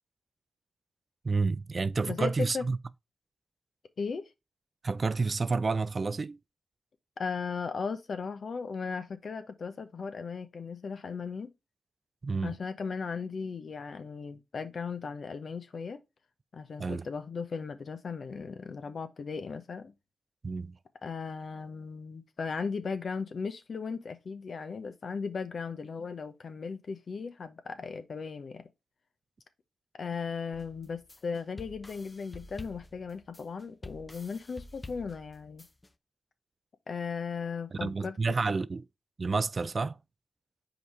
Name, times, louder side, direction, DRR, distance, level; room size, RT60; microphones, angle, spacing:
voice 1, 1.2-2.8 4.8-6.4 12.2-12.5 16.8-17.1 20.4-20.7 37.7-38.8 39.2-40.0, right 4 dB, 50° right, 0.4 m, -29 dB
voice 2, 2.1-2.7 4.0-4.3 7.2-11.5 12.4-16.0 16.5-19.9 21.0-28.6 30.0-35.7 36.9-38.2, left 5 dB, 65° left, 0.8 m, -37 dB
sound 1, 30.5-35.9, left 2 dB, 25° left, 0.7 m, -48 dB
5.0 x 4.1 x 4.7 m
cardioid pair, 45°, 0 cm